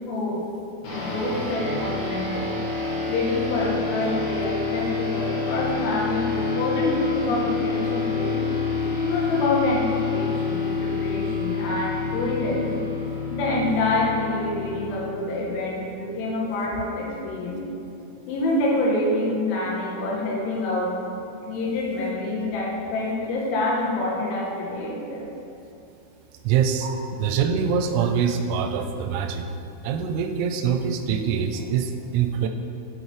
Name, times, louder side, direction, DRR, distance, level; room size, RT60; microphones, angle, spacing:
voice 1, 0.1-0.4 0.9-2.5 3.1-8.4 8.9-12.8 13.3-17.6 18.3-20.9 21.5-25.3, left 2 dB, 80° left, -4 dB, 3.3 m, -26 dB
sound 1, 0.8-15.7, left 4 dB, 60° left, 3.0 m, -28 dB
voice 2, 26.5-26.9 27.2-29.5 29.8-32.5, right 7 dB, 85° right, 6 dB, 3.1 m, -24 dB
7.8 x 7.1 x 3.2 m, 2.7 s
omnidirectional pair, 5.8 m